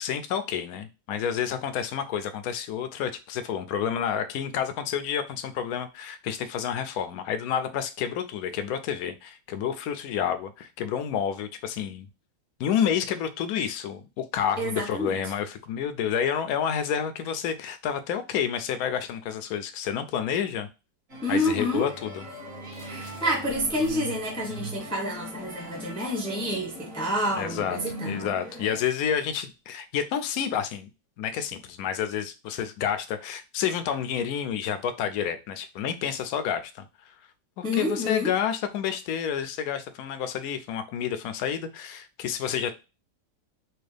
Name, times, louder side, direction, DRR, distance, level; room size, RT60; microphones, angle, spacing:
voice 1, 0.0-12.1 12.6-20.7 21.3-22.3 27.4-27.8 28.0-30.9 31.2-37.2 37.6-42.7, left 8 dB, 70° left, 0.8 m, -29 dB
voice 2, 14.6-15.2 21.2-21.9 22.8-28.3 37.6-38.3, left 1 dB, 5° left, 0.8 m, -28 dB
sound 1, 21.1-28.8, right 1 dB, 45° right, 2.1 m, -40 dB
4.5 x 2.3 x 3.3 m
omnidirectional pair, 2.0 m